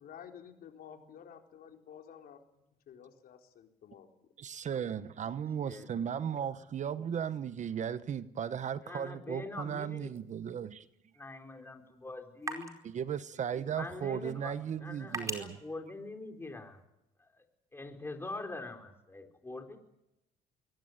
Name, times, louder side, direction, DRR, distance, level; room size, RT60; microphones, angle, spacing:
voice 1, 0.0-2.4 2.9-4.1, left 8 dB, 60° left, 4.0 m, -51 dB
voice 2, 4.4-10.9 12.8-15.6, right 8 dB, 45° right, 1.1 m, -36 dB
voice 3, 5.6-6.0 8.8-10.1 11.2-12.7 13.8-16.8 17.2-17.4 17.7-19.8, left 2 dB, 15° left, 4.0 m, -44 dB
sound 1, 10.1-16.9, right 2 dB, 20° right, 4.7 m, -47 dB
22.5 x 18.5 x 9.2 m
cardioid pair, 110°, 17 cm